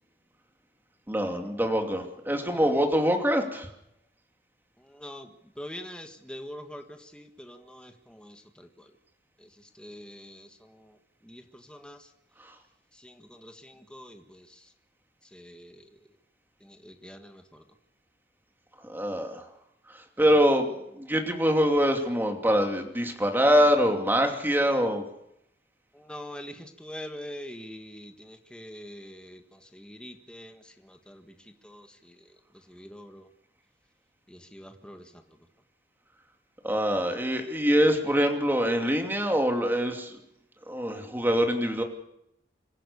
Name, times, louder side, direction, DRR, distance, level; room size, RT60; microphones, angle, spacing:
voice 1, 1.1-3.7 18.9-19.4 20.2-20.7 21.0-25.0 36.6-40.1 40.7-41.8, equal, 10° right, 3 dB, 2.7 m, -24 dB
voice 2, 4.8-8.9 9.4-11.0 11.2-12.1 12.9-14.7 15.3-15.8 16.6-17.6 25.9-32.2 32.7-33.3 34.3-35.2, equal, 5° left, 5 dB, 1.6 m, -45 dB
26.0 x 15.0 x 7.0 m, 0.80 s
head